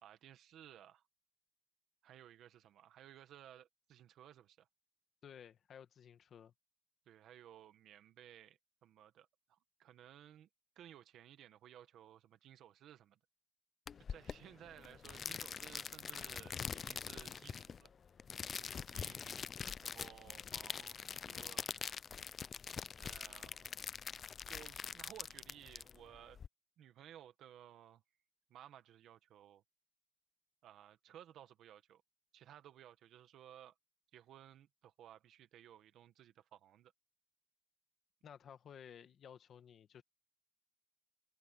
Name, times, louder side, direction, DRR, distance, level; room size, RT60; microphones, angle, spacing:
voice 1, 0.0-1.0 2.0-4.7 7.1-10.5 10.7-13.2 14.1-17.9 18.5-19.3 19.8-21.6 23.0-23.8 24.5-26.4 26.8-28.0 28.5-29.6 30.6-32.0 32.3-33.7 34.1-36.9, right 11 dB, 85° right, 1.4 m, -58 dB
voice 2, 5.2-6.5 38.2-40.0, left 8 dB, 55° left, 1.6 m, -55 dB
sound 1, 13.9-26.5, left 6 dB, 40° left, 0.4 m, -44 dB
cardioid pair, 140°, 0 cm